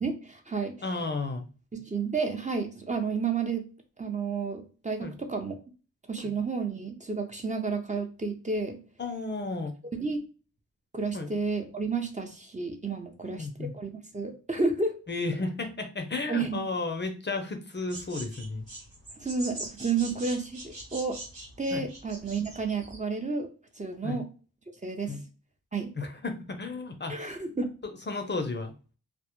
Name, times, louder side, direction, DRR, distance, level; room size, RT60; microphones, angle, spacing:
voice 1, 0.0-0.9 1.7-3.7 4.0-5.5 6.1-8.8 9.9-10.2 10.9-15.0 16.3-16.6 19.2-21.2 21.6-23.5 23.8-24.3 24.8-25.3 25.7-25.9 27.1-27.7, right 4 dB, 20° right, 4 dB, 0.5 m, -31 dB
voice 2, 0.8-1.5 5.0-5.1 6.2-6.3 9.0-9.7 11.1-11.3 13.4-13.7 15.1-18.7 21.7-21.9 24.0-24.2 25.1-25.2 26.0-27.4 28.1-28.7, left 3 dB, 35° left, 6 dB, 0.5 m, -33 dB
sound 1, 17.9-23.0, right 2 dB, 90° right, 1.1 m, -42 dB
2.1 x 2.0 x 2.9 m, 0.35 s
cardioid pair, 50°, 34 cm